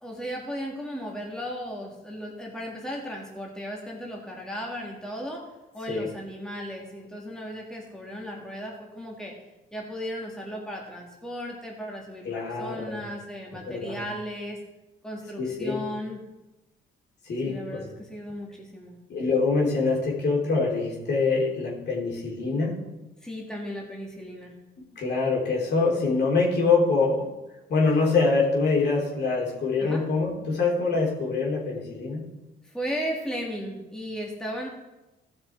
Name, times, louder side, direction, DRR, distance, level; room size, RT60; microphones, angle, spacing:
voice 1, 0.0-5.5 5.7-9.4 9.7-14.6 15.0-16.2 17.4-19.0 23.2-24.5 29.8-30.1 32.6-34.7, equal, 5° left, -1 dB, 2.0 m, -36 dB
voice 2, 12.2-13.0 13.7-14.0 15.4-15.8 17.2-17.9 19.1-22.8 25.0-27.3 27.7-32.2, left 4 dB, 60° left, -2 dB, 3.2 m, -25 dB
14.5 x 6.0 x 4.5 m, 1.0 s
cardioid pair, 90°, 20 cm